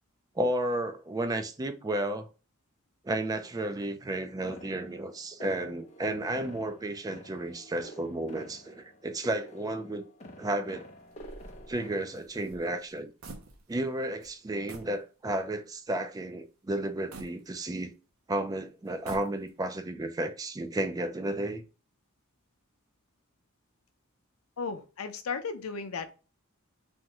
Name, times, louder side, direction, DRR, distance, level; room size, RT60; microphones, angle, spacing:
voice 1, 0.4-2.3 3.0-10.0 10.4-10.9 11.7-13.1 13.7-17.9 18.3-21.6, right 1 dB, 15° right, 0.3 m, -32 dB
sound 1, 4.4-12.1, equal, 30° left, 0.6 m, -49 dB
sound 2, 11.1-13.9 14.2-14.3 14.7-15.0 15.5-15.6 17.1-18.1 18.9-19.7, right 2 dB, 70° right, 0.7 m, -48 dB
voice 2, 24.6-26.1, left 5 dB, 75° left, 0.5 m, -35 dB
3.5 x 2.1 x 2.9 m
head